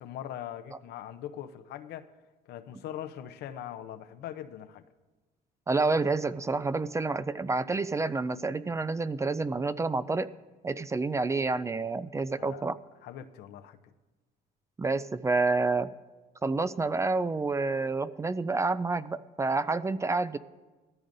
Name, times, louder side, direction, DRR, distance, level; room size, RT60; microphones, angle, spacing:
voice 1, 0.0-2.1 2.5-4.8 12.4-12.7 13.0-13.8, left 11 dB, 75° left, 0.7 m, -41 dB
voice 2, 5.7-10.3 10.6-12.8 14.8-15.9 16.4-20.4, right 3 dB, 15° right, 0.3 m, -28 dB
18.5 x 13.5 x 2.6 m
cardioid pair, 110°, 17 cm